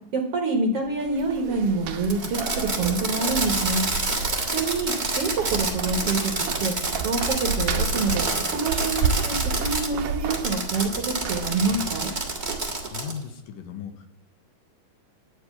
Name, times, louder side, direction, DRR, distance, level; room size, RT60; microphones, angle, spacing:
voice 1, 0.1-3.9 4.5-6.3 6.6-6.8 7.0-12.1, right 3 dB, 55° right, 2 dB, 1.8 m, -27 dB
sound 1, 0.9-13.0, right 5 dB, 75° right, 1.7 m, -31 dB
Fireworks, 2.0-9.9 10.3-13.2, right 2 dB, 35° right, 0.7 m, -28 dB
voice 2, 12.7-14.1, left 7 dB, 80° left, 6 dB, 2.7 m, -37 dB
11.0 x 5.3 x 8.3 m, 0.70 s
omnidirectional pair, 3.9 m